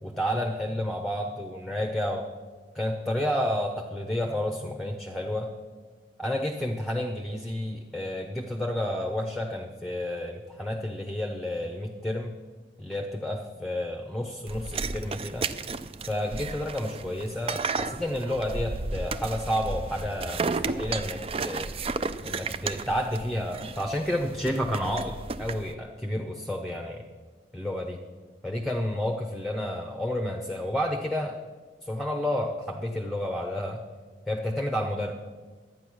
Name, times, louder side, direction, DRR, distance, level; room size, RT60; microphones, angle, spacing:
voice 1, 0.0-2.3 2.7-5.5 6.2-12.3 12.8-15.5 16.0-21.7 22.2-27.0 27.5-28.0 28.4-31.4 31.8-33.8 34.3-35.1, left 1 dB, ahead, 3 dB, 0.8 m, -30 dB
sound 1, 14.5-25.7, right 4 dB, 35° right, 0.4 m, -33 dB
12.0 x 9.3 x 6.2 m, 1.4 s
head